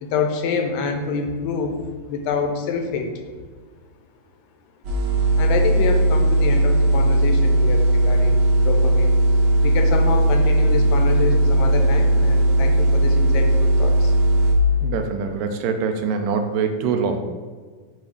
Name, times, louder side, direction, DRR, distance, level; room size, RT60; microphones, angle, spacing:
voice 1, 0.0-1.8 2.1-3.2 5.4-9.1 9.6-14.2, left 5 dB, 85° left, 4 dB, 2.2 m, -26 dB
sound 1, 4.8-14.5, right 1 dB, 65° right, 1.8 m, -17 dB
voice 2, 14.8-17.2, right 5 dB, 85° right, 5 dB, 2.2 m, -24 dB
7.5 x 2.7 x 4.7 m, 1.5 s
omnidirectional pair, 3.9 m